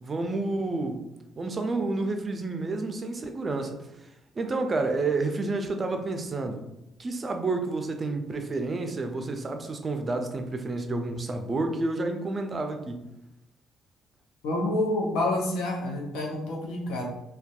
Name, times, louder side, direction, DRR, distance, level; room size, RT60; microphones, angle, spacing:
voice 1, 0.0-1.0 1.4-3.8 4.4-6.7 7.0-13.1, right 3 dB, 35° right, 5 dB, 0.4 m, -30 dB
voice 2, 14.4-17.1, left 1 dB, 80° left, 0 dB, 0.6 m, -28 dB
2.5 x 2.2 x 2.3 m, 0.88 s
supercardioid pair, 70°, 0 cm